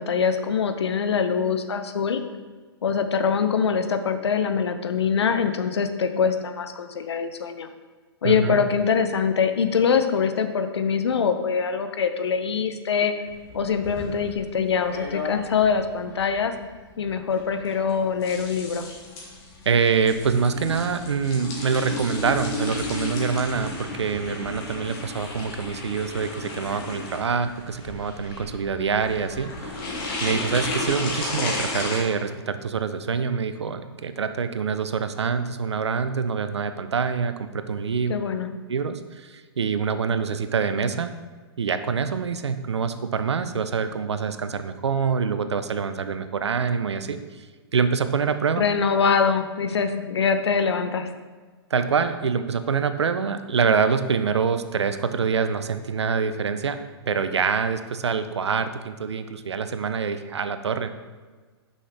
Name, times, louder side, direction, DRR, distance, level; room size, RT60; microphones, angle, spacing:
voice 1, 0.0-2.2 2.8-7.7 8.2-13.1 13.5-16.5 17.0-18.9 38.1-38.5 48.6-51.1, left 6 dB, 75° left, 9 dB, 0.6 m, -23 dB
voice 2, 8.2-8.6 19.7-29.9 30.2-38.1 38.7-41.1 41.6-47.5 47.7-48.6 51.7-56.8 57.1-60.9, right 5 dB, 85° right, 10 dB, 0.5 m, -25 dB
sound 1, 13.3-32.0, left 2 dB, 40° left, 1.9 m, -33 dB
6.1 x 5.6 x 3.4 m, 1.4 s
hypercardioid pair, 120°, 14 cm